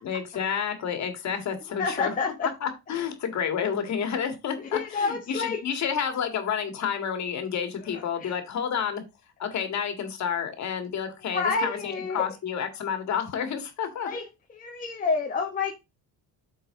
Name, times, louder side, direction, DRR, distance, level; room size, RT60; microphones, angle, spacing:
voice 1, 0.0-2.1 2.4-9.0 9.4-14.2, left 7 dB, 45° left, 2.0 m, -30 dB
voice 2, 1.8-2.5 4.7-5.6 7.9-8.3 11.3-12.3 14.0-14.2 14.5-15.7, left 4 dB, 20° left, 1.1 m, -28 dB
8.6 x 4.6 x 3.7 m
cardioid pair, 155°, 37 cm